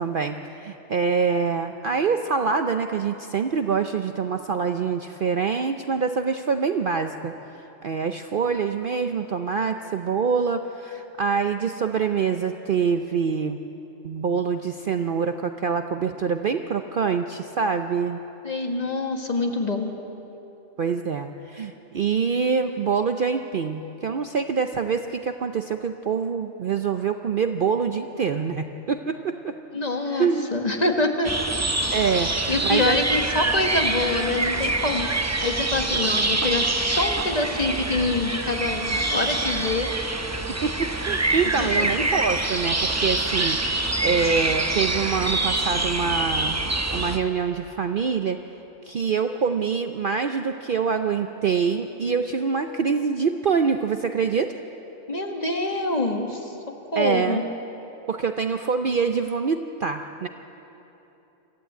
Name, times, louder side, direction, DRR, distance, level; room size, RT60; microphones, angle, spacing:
voice 1, 0.0-13.6 14.0-18.2 20.8-29.5 30.1-30.5 31.9-33.0 40.6-46.6 46.9-48.4 48.9-54.5 57.0-57.4 58.1-60.3, right 5 dB, 50° right, 7 dB, 0.7 m, -25 dB
voice 2, 18.4-19.9 29.7-31.3 32.5-39.9 41.6-42.1 55.1-57.4, left 2 dB, 30° left, 3 dB, 1.7 m, -26 dB
sound 1, 31.2-47.2, right 2 dB, 15° right, 0.6 m, -25 dB
23.0 x 14.5 x 9.2 m, 3.0 s
omnidirectional pair, 1.4 m